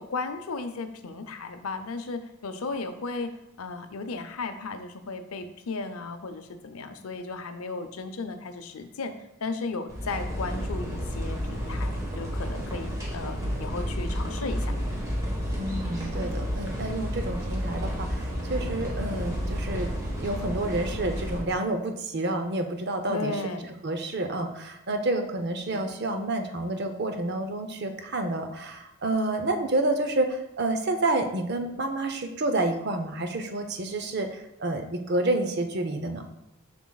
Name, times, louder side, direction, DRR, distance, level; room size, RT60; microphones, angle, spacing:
voice 1, 0.0-9.1 9.4-14.7 23.1-23.7 25.7-25.9, left 3 dB, 80° left, 8 dB, 0.6 m, -35 dB
sound 1, 9.9-21.4, equal, 15° right, 1.2 m, -31 dB
voice 2, 15.6-19.9 20.2-23.4 23.8-36.2, right 2 dB, 50° right, 6 dB, 0.6 m, -29 dB
7.0 x 6.1 x 2.3 m, 0.85 s
head